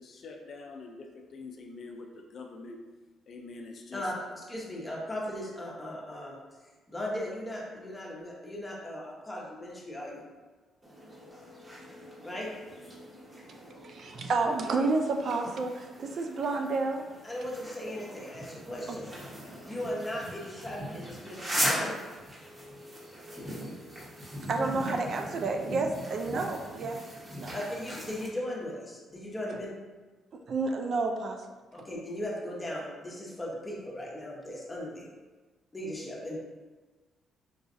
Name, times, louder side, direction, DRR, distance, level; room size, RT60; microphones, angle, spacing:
voice 1, 0.0-2.8 3.3-4.1, left 3 dB, 55° left, 3 dB, 0.3 m, -45 dB
voice 2, 3.9-6.4 6.9-10.2 12.2-12.5 17.2-19.1 19.7-21.9 27.5-29.7 31.7-35.1 35.7-36.4, left 1 dB, 15° left, -3 dB, 0.8 m, -37 dB
sound 1, 10.8-28.3, equal, 30° right, 1.1 m, -39 dB
voice 3, 13.8-17.0 18.9-19.0 24.5-27.0 27.4-27.6 30.5-31.4, right 3 dB, 55° right, 4 dB, 0.3 m, -30 dB
3.9 x 2.4 x 2.5 m, 1.3 s
cardioid pair, 90°, 0 cm